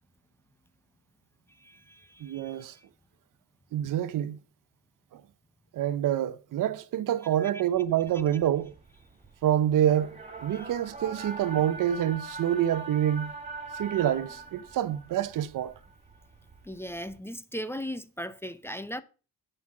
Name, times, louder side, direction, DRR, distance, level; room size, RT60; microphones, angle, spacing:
voice 1, 1.5-2.8 7.2-7.7 10.5-10.7 16.6-19.0, equal, 5° left, 0.7 m, -39 dB
voice 2, 2.2-2.8 3.7-4.4 5.1-5.2 5.7-8.7 9.4-13.3 13.7-15.7, right 11 dB, 70° right, 0.9 m, -27 dB
sound 1, 8.0-17.2, right 3 dB, 20° right, 3.0 m, -43 dB
9.8 x 5.6 x 7.3 m
cardioid pair, 115°, 33 cm